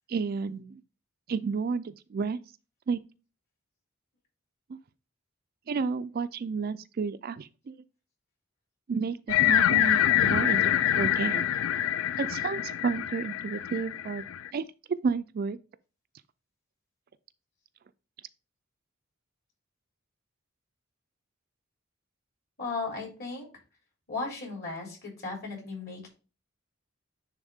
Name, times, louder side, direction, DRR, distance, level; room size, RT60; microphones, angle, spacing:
voice 1, 0.1-0.8 1.3-2.4 2.9-3.0 4.7-4.8 5.7-7.7 8.9-11.5 12.2-14.2 14.5-14.7 15.0-15.6, right 5 dB, 45° right, 0.4 m, -31 dB
sound 1, 9.3-14.5, left 11 dB, 70° left, 0.3 m, -25 dB
voice 2, 22.6-23.5 24.1-26.1, left 3 dB, 50° left, 3.7 m, -36 dB
9.9 x 3.6 x 3.5 m
head